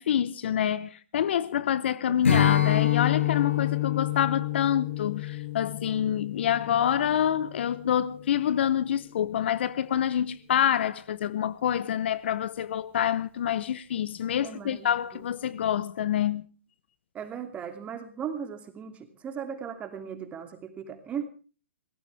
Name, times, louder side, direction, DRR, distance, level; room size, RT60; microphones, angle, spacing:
voice 1, 0.0-16.4, left 10 dB, 60° left, 0.9 m, -27 dB
Strum, 2.2-7.7, left 11 dB, 80° left, 6.7 m, -27 dB
voice 2, 14.4-15.2 17.1-21.2, right 7 dB, 20° right, 2.8 m, -38 dB
23.5 x 16.5 x 3.5 m
hypercardioid pair, 125°, 7 cm